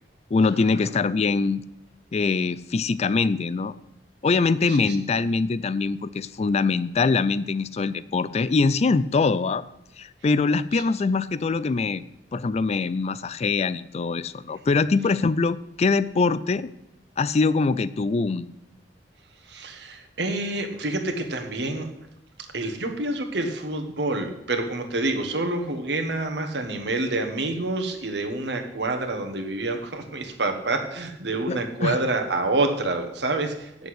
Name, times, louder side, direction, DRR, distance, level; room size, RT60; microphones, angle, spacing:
voice 1, 0.3-1.6 2.1-3.7 4.2-9.6 10.0-12.0 12.3-16.7 17.2-18.5 31.5-32.0, left 4 dB, 35° left, 16 dB, 0.4 m, -23 dB
voice 2, 19.4-21.9 22.5-33.9, right 2 dB, 70° right, 4 dB, 1.5 m, -27 dB
8.3 x 6.9 x 7.9 m, 0.81 s
head